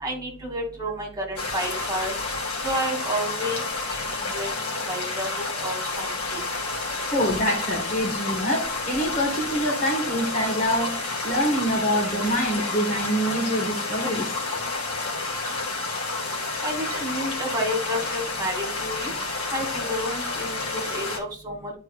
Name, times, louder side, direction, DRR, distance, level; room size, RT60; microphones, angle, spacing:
voice 1, 0.0-2.1 2.6-3.6 3.9-6.4 16.6-19.1 19.5-21.7, equal, 15° right, 2.3 m, -31 dB
sound 1, 1.4-21.2, left 3 dB, 75° left, 1.9 m, -30 dB
voice 2, 7.1-14.3, equal, 35° left, 1.5 m, -25 dB
11.5 x 4.4 x 2.4 m
head